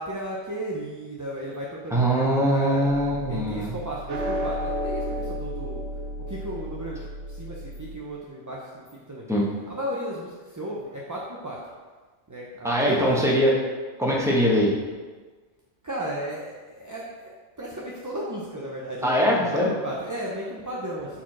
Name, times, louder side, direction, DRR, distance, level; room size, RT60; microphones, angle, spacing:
voice 1, 0.0-2.0 2.5-2.9 3.3-5.9 6.3-9.3 9.7-11.6 12.3-13.4 15.8-17.3 17.6-21.2, right 1 dB, 20° right, -5 dB, 0.5 m, -34 dB
voice 2, 1.9-3.7 9.3-9.4 12.6-13.5 14.0-14.7 19.0-19.7, equal, 5° right, -5 dB, 1.2 m, -22 dB
sound 1, 2.8-8.0, equal, 80° right, 1.0 m, -32 dB
4.9 x 4.3 x 5.9 m, 1.4 s
omnidirectional pair, 1.2 m